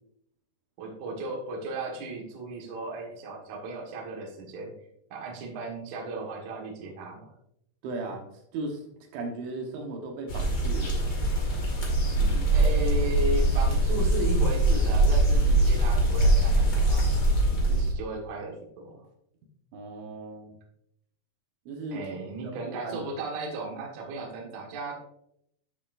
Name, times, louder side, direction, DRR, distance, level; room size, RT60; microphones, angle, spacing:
voice 1, 0.8-4.7 5.1-7.3 12.5-17.1 17.5-19.0 21.9-24.9, right 2 dB, 55° right, -1 dB, 2.1 m, -35 dB
voice 2, 7.8-8.8 9.1-11.0 12.2-12.5 19.7-20.6 21.7-22.2 22.4-23.1, right 2 dB, 75° right, 2 dB, 3.5 m, -37 dB
sound 1, 10.3-17.9, right 1 dB, 75° left, 0.9 m, -23 dB
12.5 x 7.0 x 2.6 m, 0.74 s
omnidirectional pair, 5.7 m